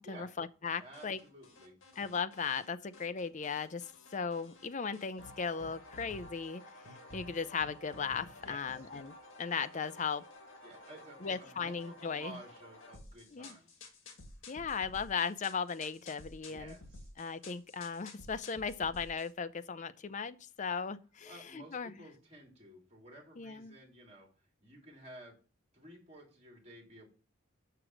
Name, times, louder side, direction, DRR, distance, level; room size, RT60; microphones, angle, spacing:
voice 1, 0.0-1.2 2.0-10.2 11.2-12.4 13.3-13.6 14.5-16.8 17.2-21.9 23.4-23.8, left 5 dB, 35° left, 0.5 m, -37 dB
voice 2, 0.8-1.8 8.4-8.8 10.6-13.8 16.5-17.1 21.2-24.3 24.6-25.4 25.7-27.1, right 1 dB, 30° right, 3.2 m, -53 dB
sound 1, 0.9-2.7 2.9-4.7 4.9-19.3, left 2 dB, 85° left, 2.1 m, -53 dB
6.8 x 6.2 x 6.1 m
head